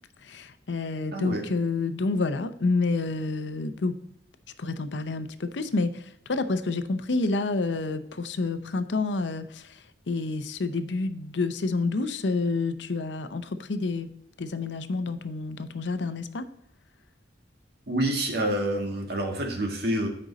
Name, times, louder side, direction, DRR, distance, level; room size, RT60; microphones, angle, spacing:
voice 1, 0.2-4.0 4.6-14.1 14.4-16.5, left 3 dB, 75° left, 11 dB, 0.6 m, -29 dB
voice 2, 1.1-1.4 17.9-20.1, right 1 dB, 60° right, 2 dB, 1.8 m, -27 dB
9.0 x 5.3 x 4.0 m, 0.77 s
head